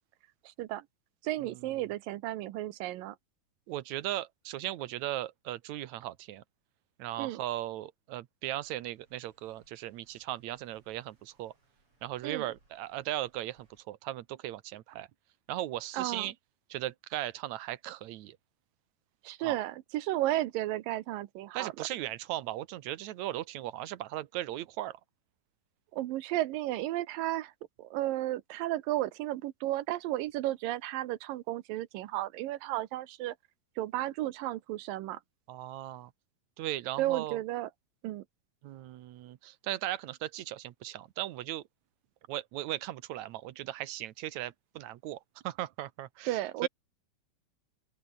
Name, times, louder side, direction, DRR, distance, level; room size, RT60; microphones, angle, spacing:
voice 1, 0.5-0.9 1.2-3.2 7.2-7.4 12.2-12.5 15.9-16.3 19.2-21.9 25.9-27.5 27.8-33.3 33.8-35.2 37.0-37.7 38.0-38.2 46.3-46.7, right 15 dB, 80° right, 2.6 m, -33 dB
voice 2, 3.7-6.4 7.0-11.5 12.0-15.1 15.5-16.3 16.7-18.4 19.4-19.6 21.5-25.0 35.5-36.1 36.6-37.4 38.6-41.6 42.3-46.7, right 14 dB, 65° right, 2.0 m, -37 dB
sound 1, 8.5-13.8, right 2 dB, 40° right, 8.3 m, -70 dB
open air
omnidirectional pair, 4.0 m